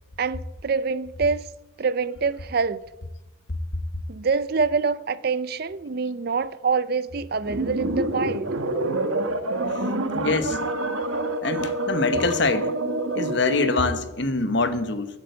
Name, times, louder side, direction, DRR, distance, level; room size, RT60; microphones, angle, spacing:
voice 1, 0.2-1.5 1.8-2.8 4.1-8.5, right 5 dB, 50° right, 0.5 m, -25 dB
sound 1, 7.4-13.9, right 2 dB, 85° right, 1.5 m, -27 dB
voice 2, 10.1-10.6 11.4-12.7 13.1-15.1, left 3 dB, 60° left, 1.1 m, -24 dB
14.5 x 8.9 x 7.9 m
head